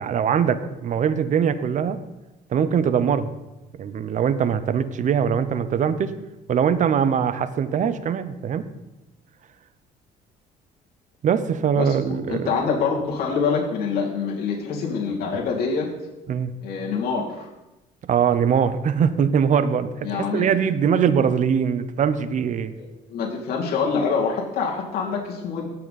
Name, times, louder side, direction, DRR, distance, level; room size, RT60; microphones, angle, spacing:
voice 1, 0.0-2.0 2.5-3.3 3.8-6.2 6.5-8.7 11.2-12.5 16.3-16.5 18.1-22.7, right 7 dB, 45° right, 13 dB, 0.7 m, -22 dB
voice 2, 11.8-15.9 16.6-17.5 20.0-20.5 22.8-25.7, left 5 dB, 65° left, -3 dB, 2.4 m, -25 dB
16.0 x 5.9 x 4.2 m, 1.0 s
cardioid pair, 110°, 17 cm